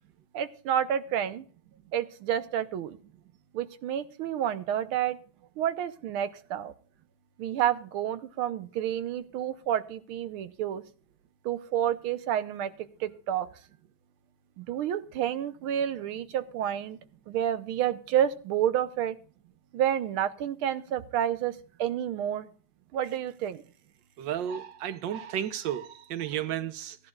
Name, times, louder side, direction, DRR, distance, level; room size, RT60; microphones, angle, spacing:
voice 1, 0.3-1.4 1.9-3.0 3.5-5.2 5.6-6.7 7.4-10.8 11.5-12.7 13.0-13.5 14.6-17.0 17.3-19.2 19.7-22.5 22.9-23.6, right 10 dB, 80° right, 1.7 m, -29 dB
voice 2, 24.2-27.0, right 10 dB, 65° right, 1.5 m, -33 dB
17.0 x 11.0 x 2.4 m
omnidirectional pair, 2.3 m